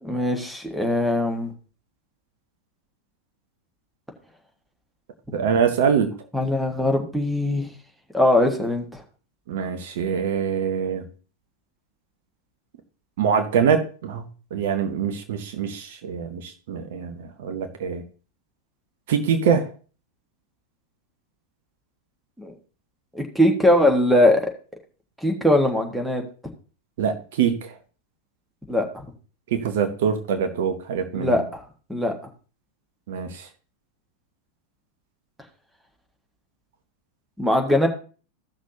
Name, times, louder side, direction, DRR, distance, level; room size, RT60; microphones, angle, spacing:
voice 1, 0.0-1.5 6.3-7.7 8.1-9.0 22.4-22.5 23.1-24.4 25.2-26.2 28.7-28.8 31.1-31.6 31.9-32.1 37.4-37.9, left 1 dB, 5° right, 3 dB, 1.6 m, -21 dB
voice 2, 5.3-6.1 9.5-11.0 13.2-14.3 14.5-18.0 19.1-19.7 27.0-27.7 29.5-31.4 33.1-33.5, right 7 dB, 55° right, 7 dB, 1.0 m, -24 dB
15.5 x 6.2 x 2.7 m, 0.37 s
figure-of-eight pair, 90°, 0 cm